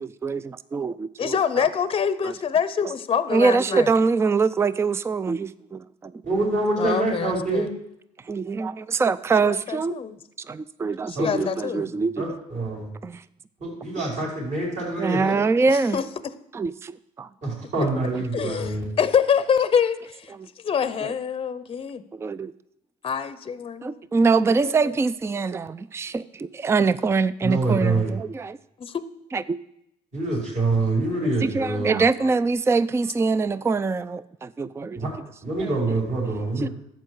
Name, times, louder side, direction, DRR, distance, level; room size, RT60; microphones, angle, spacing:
voice 1, 0.0-1.7 2.2-2.3 3.3-6.1 8.2-10.0 10.4-12.2 13.0-13.2 15.0-16.0 16.5-17.3 18.1-18.5 20.3-20.5 21.0-21.1 22.1-22.5 23.8-28.6 29.3-29.6 31.4-35.1 35.6-35.8 36.6-36.7, right 4 dB, 15° right, 16 dB, 0.4 m, -24 dB
voice 2, 1.2-3.9 6.8-7.7 9.4-10.2 11.1-11.9 15.7-16.0 18.3-22.0 23.0-24.0 24.6-24.8 28.8-29.0, left 7 dB, 35° left, 15 dB, 0.7 m, -25 dB
voice 3, 6.2-7.7 11.1-11.5 12.2-12.9 13.6-15.4 17.4-18.9 27.4-28.1 30.1-32.0 34.9-35.1 35.4-36.7, right 2 dB, 50° right, -3 dB, 4.6 m, -25 dB
11.5 x 8.0 x 4.7 m, 0.80 s
supercardioid pair, 75°, 16 cm